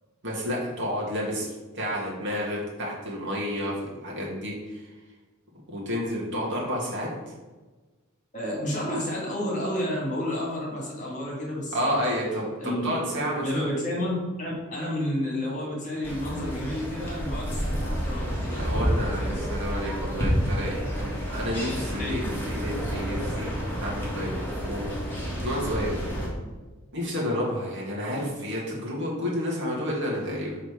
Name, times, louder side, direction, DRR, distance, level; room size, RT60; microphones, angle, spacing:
voice 1, 0.2-1.5 1.7-4.8 5.7-7.3 11.7-13.7 18.6-22.2 22.5-23.5 23.8-24.8 25.1-25.9 26.9-30.6, equal, 60° right, -4 dB, 1.9 m, -30 dB
voice 2, 8.3-12.0 12.6-12.9 13.4-18.6 19.0-19.4 21.9-22.3, left 1 dB, 35° left, -3 dB, 1.9 m, -31 dB
sound 1, 16.0-26.3, equal, 10° left, 1.7 m, -30 dB
6.5 x 3.9 x 4.9 m, 1.2 s
head